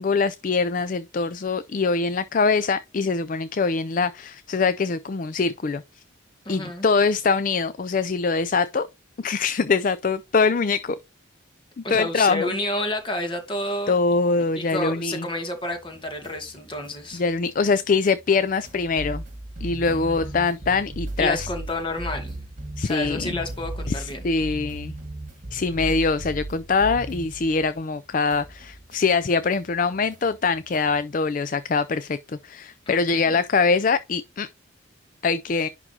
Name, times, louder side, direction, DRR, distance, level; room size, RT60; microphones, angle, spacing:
voice 1, 0.0-6.0 6.5-8.9 9.2-11.0 11.9-12.5 13.9-15.3 17.1-19.2 19.6-21.5 22.8-23.4 23.9-24.9 25.5-34.5 35.2-35.7, left 4 dB, 40° left, 0.4 m, -23 dB
voice 2, 6.4-6.9 11.8-14.0 14.3-17.2 19.9-20.3 21.2-22.4 22.8-24.3 32.9-33.4, left 1 dB, 25° left, 2.3 m, -30 dB
sound 1, 15.7-28.0 28.3-31.1, right 1 dB, 40° right, 1.8 m, -37 dB
11.0 x 3.7 x 2.8 m
head